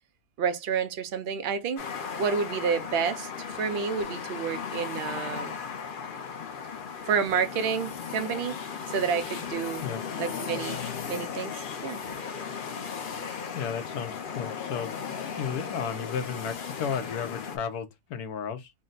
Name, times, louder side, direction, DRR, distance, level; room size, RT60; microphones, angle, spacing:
voice 1, 0.4-1.9 2.2-5.6 7.1-8.6 8.9-9.8 10.2-10.8 11.1-12.0, right 6 dB, 80° right, 0.5 m, -29 dB
sound 1, 1.8-17.6, left 6 dB, 55° left, 0.6 m, -36 dB
voice 2, 13.5-14.9 15.4-18.7, left 7 dB, 75° left, 1.2 m, -33 dB
3.7 x 2.1 x 3.8 m
omnidirectional pair, 1.6 m